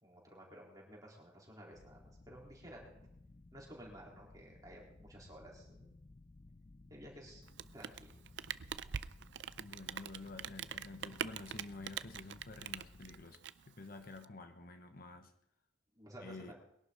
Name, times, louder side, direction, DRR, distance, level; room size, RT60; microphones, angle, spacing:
voice 1, 0.0-3.0 3.5-6.0 6.9-7.4 7.7-8.1 15.9-16.5, right 1 dB, 20° right, -3 dB, 4.0 m, -54 dB
sound 1, 1.7-13.2, left 2 dB, 35° left, 0.5 m, -59 dB
Rain, 7.4-14.2, right 8 dB, 65° right, 0.5 m, -44 dB
voice 2, 9.6-13.4 13.7-15.3 16.2-16.5, left 2 dB, 50° left, 7 dB, 1.1 m, -50 dB
21.5 x 11.5 x 4.1 m, 0.79 s
head